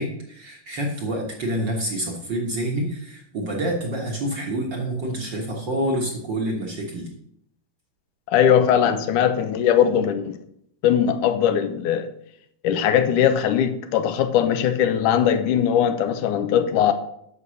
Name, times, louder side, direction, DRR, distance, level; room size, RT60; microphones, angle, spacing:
voice 1, 0.0-7.1, right 1 dB, 50° right, 0 dB, 1.6 m, -27 dB
voice 2, 8.3-10.4 10.8-12.1 12.6-16.9, left 9 dB, 80° left, 10 dB, 2.3 m, -20 dB
9.6 x 6.9 x 6.4 m, 0.72 s
omnidirectional pair, 3.6 m